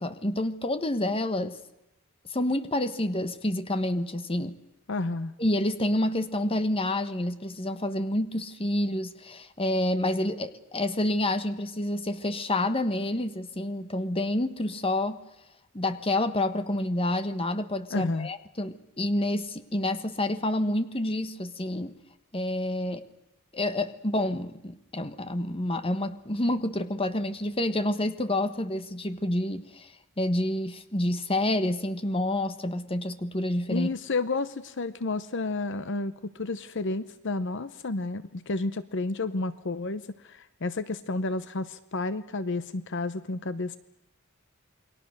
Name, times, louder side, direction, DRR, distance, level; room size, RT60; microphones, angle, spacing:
voice 1, 0.0-1.6 2.3-4.6 5.4-15.2 15.7-22.0 22.3-23.0 23.5-29.9 30.2-33.9, left 1 dB, 25° left, 11 dB, 1.3 m, -28 dB
voice 2, 4.9-5.3 17.9-18.3 33.7-43.8, left 3 dB, 60° left, 14 dB, 0.8 m, -31 dB
28.5 x 22.5 x 6.5 m, 0.90 s
head